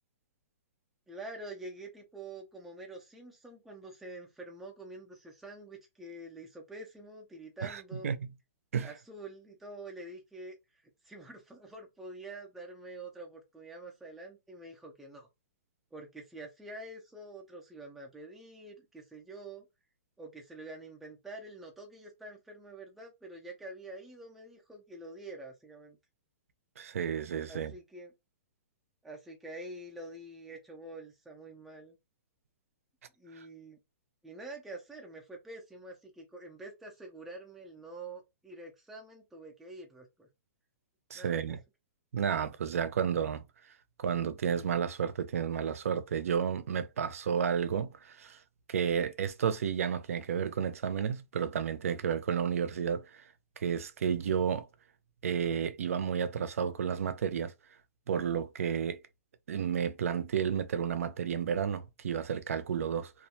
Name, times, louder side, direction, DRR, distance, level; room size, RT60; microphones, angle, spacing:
voice 1, 1.1-8.2 8.8-10.6 11.0-15.3 15.9-19.7 20.2-26.0 27.4-28.1 29.0-32.0 33.2-33.8 34.2-40.3 41.1-41.4, right 2 dB, ahead, 0.3 m, -46 dB
voice 2, 7.6-8.2 8.7-8.9 26.8-27.7 41.1-41.6 42.1-43.4 44.0-48.4 48.7-53.2 53.6-54.7 55.2-57.5 58.1-59.0 59.5-63.1, right 7 dB, 70° right, 0.4 m, -31 dB
2.3 x 2.1 x 2.7 m
hypercardioid pair, 180°, 8 cm